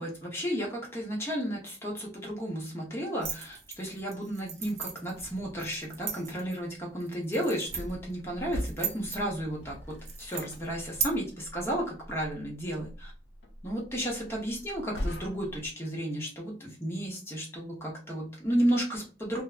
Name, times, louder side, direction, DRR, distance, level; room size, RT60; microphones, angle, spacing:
voice 1, 0.0-13.1 13.6-19.4, equal, 15° left, -2 dB, 0.8 m, -33 dB
sound 1, 3.2-11.1, right 7 dB, 40° right, 0.5 m, -38 dB
sound 2, 7.7-15.7, equal, 80° left, 0.5 m, -42 dB
2.5 x 2.1 x 2.4 m, 0.35 s
head